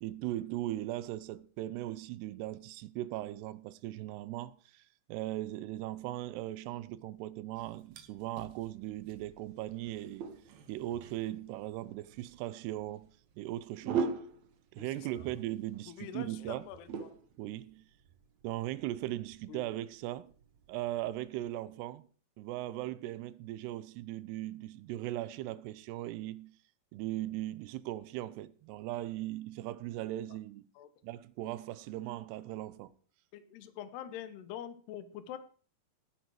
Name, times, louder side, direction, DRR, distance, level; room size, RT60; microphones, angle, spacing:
voice 1, 0.0-4.8 5.1-10.3 10.7-13.1 13.4-14.1 14.7-16.7 17.4-17.8 18.4-20.3 20.7-22.1 22.4-26.5 26.9-30.7 31.0-32.9, right 15 dB, 80° right, 2.7 m, -38 dB
sound 1, 7.6-21.6, right 5 dB, 65° right, 1.9 m, -43 dB
voice 2, 15.9-17.1 19.5-19.7 30.8-30.9 33.3-35.4, left 10 dB, 75° left, 3.2 m, -45 dB
17.5 x 9.2 x 4.8 m
omnidirectional pair, 4.9 m